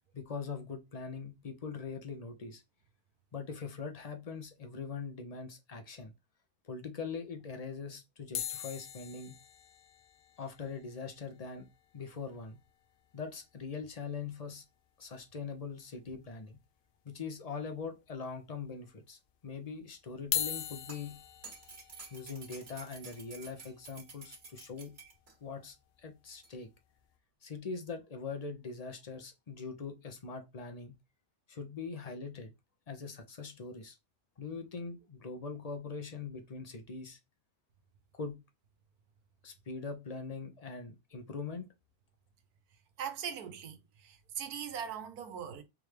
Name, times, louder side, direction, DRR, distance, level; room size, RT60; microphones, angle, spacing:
voice 1, 0.1-2.6 3.3-6.1 6.6-9.3 10.4-11.7 11.9-12.6 13.1-14.6 15.0-16.6 17.0-21.2 22.1-25.0 25.4-26.7 27.4-30.9 31.5-32.5 32.9-34.0 34.4-37.2 38.1-38.4 39.4-41.7, left 5 dB, 40° left, 0.6 m, -42 dB
sound 1, 8.3-12.7 13.0-13.1 13.2-13.4 13.8-13.9 15.3-15.4 16.1-16.6 17.1-17.2 18.1-18.2 20.1-26.2 26.8-27.0, left 10 dB, 90° left, 0.4 m, -42 dB
sound 2, 20.5-25.3 26.4-26.5, right 4 dB, 45° right, 1.4 m, -51 dB
voice 2, 43.0-43.8 44.0-45.6, right 8 dB, 85° right, 1.3 m, -40 dB
3.5 x 3.2 x 3.2 m
omnidirectional pair, 1.6 m